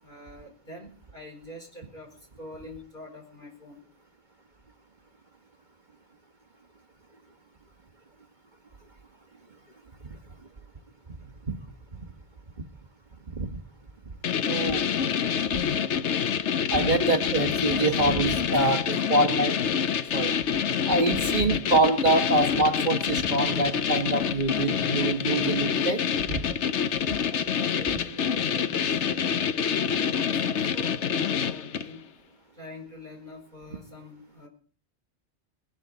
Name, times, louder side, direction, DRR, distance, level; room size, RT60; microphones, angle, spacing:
voice 1, 0.0-3.9 18.5-19.0 27.3-32.0 32.5-34.5, left 1 dB, 45° left, 1 dB, 5.1 m, -44 dB
sound 1, 14.2-32.0, left 7 dB, 90° left, 1.1 m, -27 dB
voice 2, 14.5-14.8 15.5-15.6 16.7-18.8 19.1-19.6 20.1-20.3 20.9-26.0 26.3-26.4, right 2 dB, 45° right, 6 dB, 1.5 m, -25 dB
20.5 x 12.5 x 4.0 m, 0.40 s
omnidirectional pair, 1.1 m